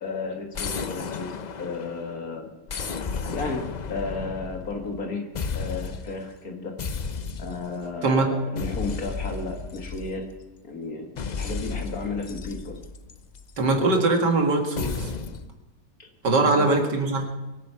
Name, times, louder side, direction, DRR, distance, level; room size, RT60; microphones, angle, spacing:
voice 1, 0.0-1.3 1.6-2.5 3.3-5.3 5.5-6.7 7.4-10.3 10.6-12.8 16.0-16.1 16.4-16.9, left 3 dB, 60° left, 3 dB, 2.2 m, -33 dB
sound 1, 0.5-2.1 2.7-5.0 5.4-6.2 6.8-7.8 8.6-10.4 11.2-13.6 14.8-15.5, left 5 dB, 80° left, 0.4 m, -33 dB
voice 2, 13.6-15.1 16.2-17.2, right 3 dB, 85° right, 3 dB, 2.6 m, -21 dB
23.0 x 9.3 x 5.7 m, 1.1 s
omnidirectional pair, 1.8 m